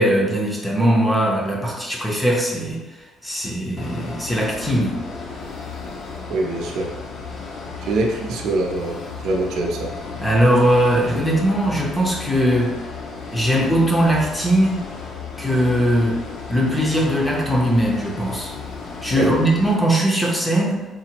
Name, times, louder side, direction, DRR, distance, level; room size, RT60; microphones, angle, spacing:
voice 1, 0.0-2.8 3.2-5.0 10.2-12.8 13.3-14.8 15.4-16.2 16.5-18.5 19.0-20.9, equal, 5° left, -3 dB, 0.6 m, -20 dB
sound 1, 3.8-19.8, left 4 dB, 50° left, 0.5 m, -34 dB
voice 2, 6.3-6.9 7.8-9.9 19.2-19.4, right 2 dB, 70° right, 0 dB, 0.6 m, -24 dB
3.8 x 2.0 x 4.4 m, 1.1 s
cardioid pair, 170°, 0 cm